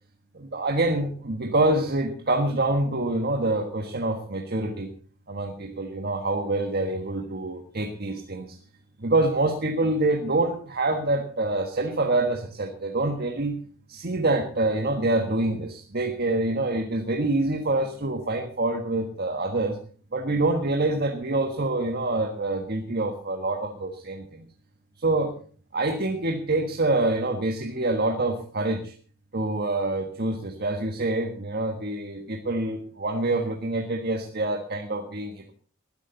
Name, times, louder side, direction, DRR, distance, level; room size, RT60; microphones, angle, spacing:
voice 1, 0.3-4.9 5.3-8.6 9.0-13.6 13.9-19.8 20.1-24.5 25.0-25.4 25.7-28.9 29.3-35.5, right 2 dB, 50° right, 4 dB, 1.5 m, -26 dB
20.0 x 11.5 x 4.0 m, 0.43 s
head